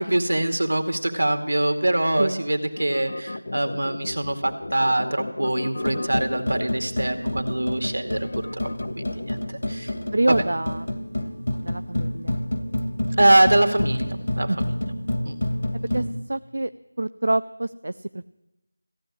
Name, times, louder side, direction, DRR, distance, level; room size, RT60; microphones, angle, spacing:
voice 1, 0.0-8.7 9.0-9.4 9.7-9.9 10.3-10.4 13.2-14.7 15.2-15.3, right 1 dB, 80° right, 6 dB, 2.2 m, -23 dB
sound 1, 2.8-9.5, left 2 dB, 45° left, 0.6 m, -35 dB
sound 2, 5.8-16.1, left 1 dB, 75° left, 2.3 m, -28 dB
voice 2, 10.1-10.9 11.6-12.4 14.5-14.8 15.9-16.7 17.0-18.2, right 2 dB, 65° right, 12 dB, 0.5 m, -26 dB
15.5 x 8.9 x 9.8 m, 0.91 s
figure-of-eight pair, 175°, 0 cm